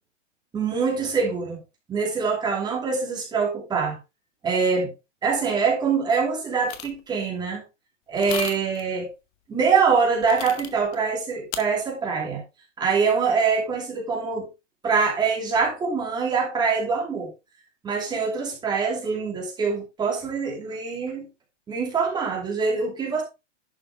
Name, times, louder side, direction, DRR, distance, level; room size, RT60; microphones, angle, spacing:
voice 1, 0.5-1.6 1.9-4.0 4.4-4.9 5.2-7.6 8.1-9.1 9.5-12.4 12.8-14.5 14.8-17.3 17.8-21.3 21.7-23.2, right 5 dB, 10° right, -1 dB, 2.7 m, -24 dB
sound 1, 6.7-7.0 8.1-8.8 10.2-11.0 11.5-11.6, left 11 dB, 25° left, 0.9 m, -35 dB
11.0 x 6.0 x 3.6 m, 0.26 s
hypercardioid pair, 160°, 37 cm